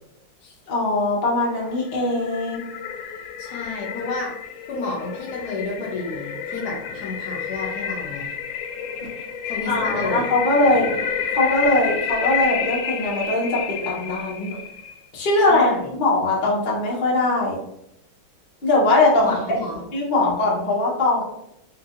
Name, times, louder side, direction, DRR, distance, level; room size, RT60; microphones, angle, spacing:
voice 1, 0.7-2.6 9.7-10.9 11.3-14.6 15.1-15.7 16.0-17.6 18.6-19.6 19.9-21.2, left 2 dB, 40° left, -4 dB, 0.7 m, -21 dB
sound 1, 1.6-15.0, left 7 dB, 90° left, 1.4 m, -30 dB
voice 2, 3.4-4.4 4.7-8.3 9.5-10.3 15.5-15.9 19.2-19.8, left 3 dB, 65° left, -2 dB, 1.1 m, -31 dB
4.5 x 2.8 x 2.5 m, 0.81 s
omnidirectional pair, 2.2 m